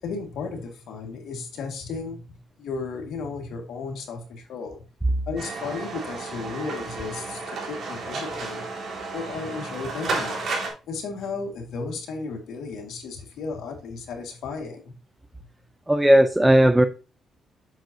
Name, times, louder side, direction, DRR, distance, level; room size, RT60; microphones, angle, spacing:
voice 1, 0.0-2.2 2.6-4.8 5.3-8.7 9.1-10.5 10.9-14.9, left 4 dB, 75° left, 1.9 m, -34 dB
sound 1, 5.4-10.7, right 3 dB, 60° right, 3.7 m, -32 dB
voice 2, 15.9-16.9, right 1 dB, 10° right, 0.5 m, -16 dB
7.9 x 6.5 x 2.8 m
cardioid pair, 90°, 0 cm